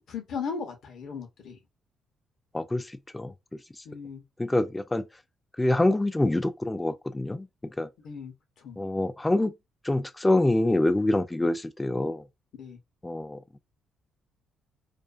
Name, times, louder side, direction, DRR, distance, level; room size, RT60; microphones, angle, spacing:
voice 1, 0.0-1.6 3.8-4.2 8.0-8.3 8.6-8.8 12.6-12.8, left 6 dB, 65° left, 0.7 m, -37 dB
voice 2, 2.5-3.8 4.4-5.1 5.6-7.9 8.8-9.5 9.8-12.3 13.0-13.6, left 1 dB, 15° left, 0.4 m, -26 dB
2.4 x 2.4 x 2.3 m
hypercardioid pair, 50°, 0 cm